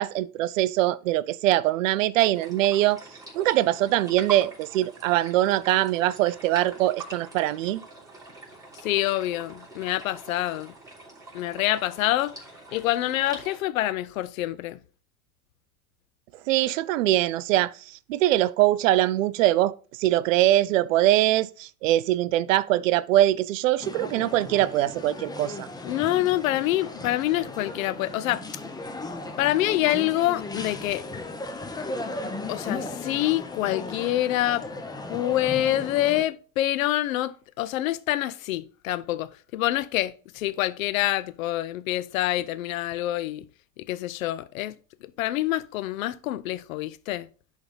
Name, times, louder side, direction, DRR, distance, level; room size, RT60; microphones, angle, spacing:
voice 1, 0.0-3.0 3.4-7.8 16.5-25.7, right 14 dB, 60° right, 0.5 m, -23 dB
sound 1, 2.3-13.6, right 2 dB, 5° right, 3.1 m, -44 dB
voice 2, 8.8-10.7 11.3-12.4 12.7-14.8 25.8-28.4 29.4-31.0 32.5-34.6 35.1-43.4 43.8-44.8 45.2-47.3, left 15 dB, 65° left, 0.6 m, -26 dB
sound 2, 23.8-36.2, left 2 dB, 10° left, 0.8 m, -36 dB
10.5 x 3.5 x 3.9 m
figure-of-eight pair, 80°, 45 cm